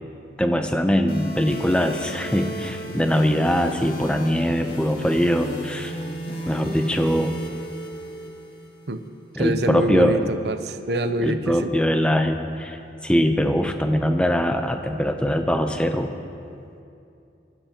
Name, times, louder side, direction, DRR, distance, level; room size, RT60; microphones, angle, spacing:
voice 1, 0.4-6.0 6.5-7.4 9.4-10.2 11.2-16.1, equal, 5° left, 5 dB, 0.6 m, -22 dB
sound 1, 1.1-9.1, equal, 65° left, 1.9 m, -34 dB
voice 2, 9.4-11.7, right 1 dB, 70° right, 10 dB, 0.6 m, -25 dB
23.0 x 13.5 x 2.9 m, 2.6 s
head